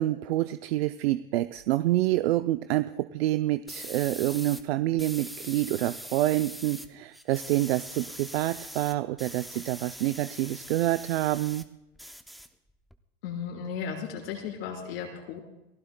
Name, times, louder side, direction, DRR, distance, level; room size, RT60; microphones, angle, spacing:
voice 1, 0.0-11.6, right 15 dB, 80° right, 11 dB, 0.6 m, -27 dB
sound 1, 3.7-4.6 5.0-6.9 7.1-11.7 12.0-13.0, equal, ahead, 0.5 m, -42 dB
voice 2, 13.2-15.4, left 7 dB, 75° left, 0 dB, 4.3 m, -35 dB
28.5 x 15.0 x 2.2 m, 0.94 s
supercardioid pair, 120°, 31 cm